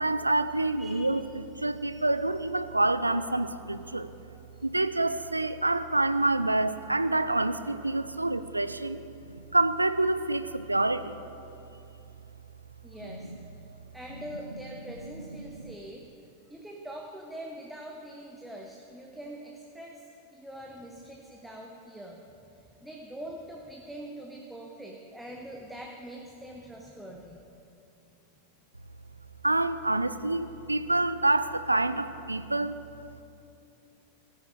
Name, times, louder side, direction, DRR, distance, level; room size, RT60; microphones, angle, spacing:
voice 1, 0.0-4.1 4.6-9.0 9.3-11.2 15.1-15.3 15.6-15.7 29.4-32.8, right 2 dB, 85° right, 13 dB, 0.4 m, -27 dB
voice 2, 0.8-1.1 1.9-2.0 4.5-4.6 12.8-13.3 13.9-16.1 16.5-22.2 22.5-27.4, right 1 dB, 5° right, 0 dB, 0.9 m, -43 dB
14.0 x 9.8 x 4.8 m, 2.8 s
figure-of-eight pair, 90°, 0 cm